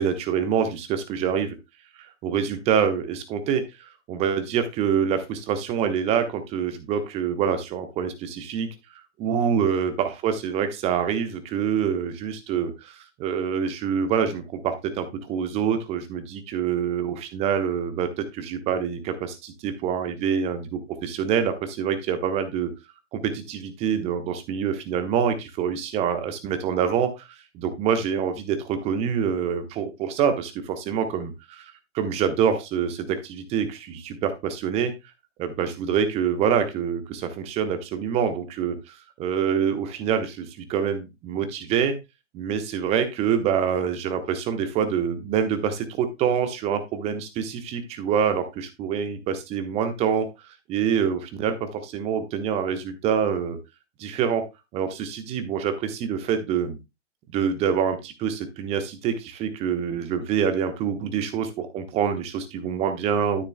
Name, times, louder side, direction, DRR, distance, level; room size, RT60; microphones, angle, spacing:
voice 1, 0.0-1.6 2.2-8.7 9.2-22.7 23.1-27.3 27.5-34.9 35.4-42.0 42.3-50.3 50.7-53.6 54.0-54.4 54.7-56.8 57.3-63.4, right 7 dB, 15° right, 8 dB, 1.1 m, -26 dB
12.5 x 6.6 x 2.2 m, 0.24 s
figure-of-eight pair, 120°, 36 cm